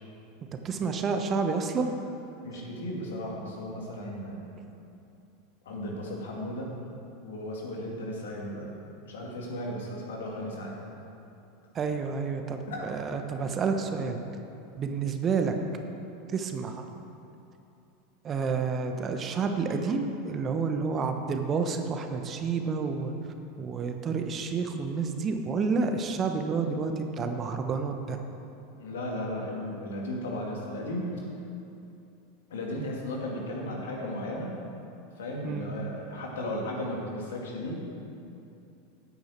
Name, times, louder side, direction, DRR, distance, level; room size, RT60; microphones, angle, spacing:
voice 1, 0.6-1.9 11.7-14.2 14.8-15.5 16.3-16.8 18.2-23.1 23.6-28.2 35.4-35.7, right 5 dB, 30° right, 6 dB, 1.1 m, -29 dB
voice 2, 2.4-4.4 5.6-6.7 7.2-8.7 9.0-10.8 12.7-12.8 28.8-31.3 32.5-34.6 35.2-37.8, left 1 dB, 70° left, -1 dB, 2.3 m, -35 dB
15.0 x 8.8 x 4.5 m, 2.8 s
figure-of-eight pair, 85°, 0 cm